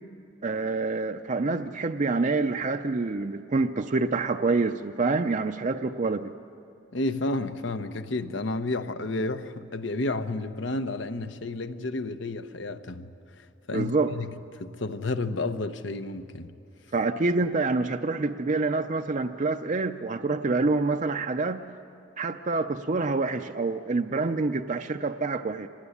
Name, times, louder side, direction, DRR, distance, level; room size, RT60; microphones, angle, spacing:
voice 1, 0.4-6.3 13.7-14.1 16.9-21.6 22.2-25.7, right 3 dB, 40° right, 0.5 m, -27 dB
voice 2, 6.9-13.1 13.7-16.5, left 2 dB, 80° left, 1.0 m, -31 dB
25.5 x 19.5 x 9.9 m
head